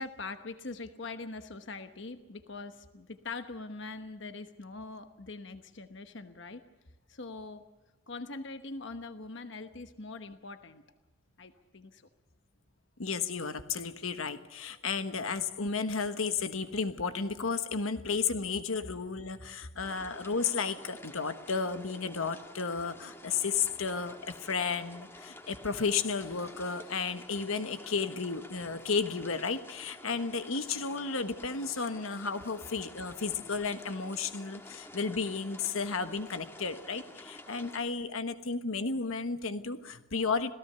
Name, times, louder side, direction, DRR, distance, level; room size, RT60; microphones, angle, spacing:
voice 1, 0.0-6.6 7.1-7.6 8.1-10.8 11.4-12.0, left 3 dB, 60° left, 9 dB, 1.1 m, -42 dB
voice 2, 13.0-40.5, left 5 dB, 80° left, 10 dB, 1.3 m, -33 dB
sound 1, 19.8-37.8, left 1 dB, 10° left, 1.6 m, -50 dB
27.0 x 17.5 x 6.9 m, 1.2 s
head